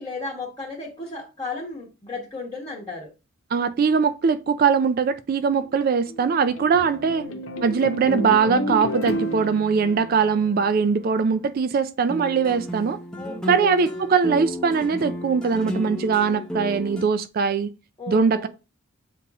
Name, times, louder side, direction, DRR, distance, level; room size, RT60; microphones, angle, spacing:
voice 1, 0.0-3.1 7.1-7.4 13.2-13.7 18.0-18.5, left 3 dB, 20° left, 1.0 m, -34 dB
voice 2, 3.5-7.2 7.6-13.0 13.5-17.7 18.1-18.5, right 5 dB, 45° right, 0.3 m, -21 dB
sound 1, 5.6-11.2, equal, 85° left, 0.7 m, -31 dB
sound 2, 12.1-17.0, equal, 5° left, 0.6 m, -32 dB
7.4 x 2.9 x 2.4 m
head